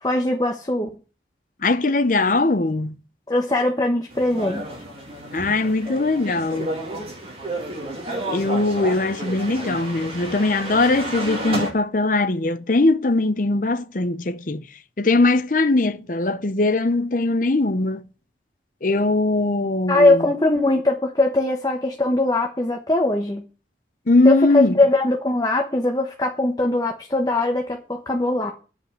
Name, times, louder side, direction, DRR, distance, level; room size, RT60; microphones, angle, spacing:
voice 1, 0.0-1.0 3.3-4.6 19.9-23.4 24.2-28.5, left 2 dB, 20° left, 1.1 m, -21 dB
voice 2, 1.6-2.9 5.3-6.8 8.3-14.6 15.0-18.1 18.8-20.3 24.1-24.8, left 2 dB, 45° left, 0.7 m, -20 dB
sound 1, 4.1-11.7, right 1 dB, 30° right, 2.6 m, -31 dB
9.6 x 5.3 x 8.2 m
head